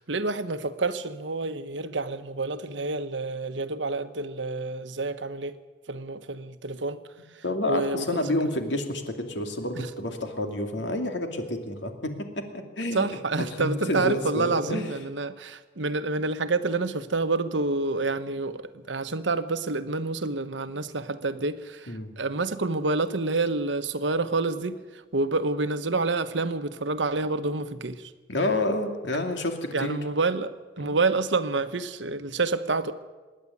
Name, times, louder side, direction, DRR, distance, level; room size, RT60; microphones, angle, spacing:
voice 1, 0.0-5.5 5.9-7.0 7.3-8.2 9.8-9.9 12.9-28.1 29.7-32.9, right 3 dB, 80° right, 1.1 m, -28 dB
voice 2, 7.4-14.9 21.9-22.1 28.3-30.0 30.8-31.0, left 1 dB, 75° left, 2.5 m, -29 dB
25.5 x 10.5 x 9.8 m
head